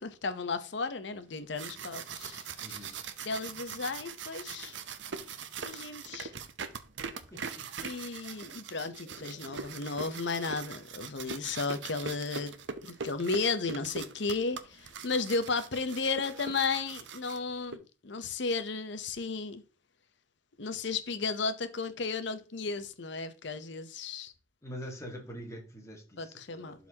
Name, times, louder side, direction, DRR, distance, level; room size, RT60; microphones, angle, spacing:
voice 1, 0.0-2.8 3.2-4.8 5.6-6.3 7.8-12.5 12.8-19.6 20.6-24.3 26.2-26.8, left 4 dB, 60° left, 0.8 m, -34 dB
sound 1, 1.3-17.8, right 6 dB, 65° right, 0.7 m, -42 dB
voice 2, 2.6-3.0 7.3-7.7 9.0-9.7 24.6-26.9, equal, 15° left, 1.5 m, -45 dB
12.0 x 4.1 x 2.8 m
head